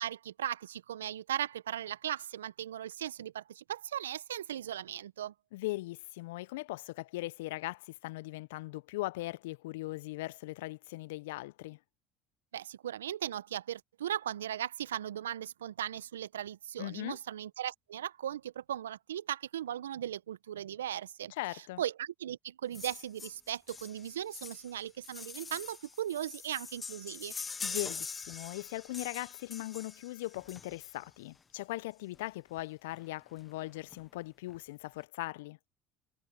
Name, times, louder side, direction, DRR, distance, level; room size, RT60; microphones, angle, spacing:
voice 1, 0.0-5.3 12.5-21.3 21.8-27.4, right 11 dB, 80° right, 1.2 m, -38 dB
voice 2, 5.5-11.8 16.8-17.2 21.3-21.8 27.6-35.6, left 19 dB, 75° left, 0.8 m, -39 dB
sound 1, 22.7-31.1 32.2-32.3 32.6-32.7 32.9-33.1 33.4-34.0 34.5-34.6, left 5 dB, 25° left, 1.1 m, -44 dB
hypercardioid pair, 65°, 0 cm